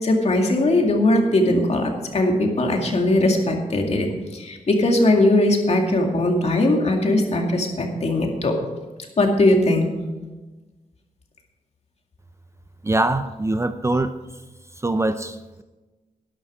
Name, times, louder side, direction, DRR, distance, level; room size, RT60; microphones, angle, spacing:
voice 1, 0.0-4.1 4.3-8.6 9.2-9.9, left 1 dB, 50° left, 2 dB, 2.2 m, -19 dB
voice 2, 12.8-14.1 14.8-15.3, right 2 dB, 20° right, 10 dB, 0.5 m, -22 dB
12.0 x 11.5 x 5.0 m, 1.2 s
wide cardioid pair, 105°, 14 cm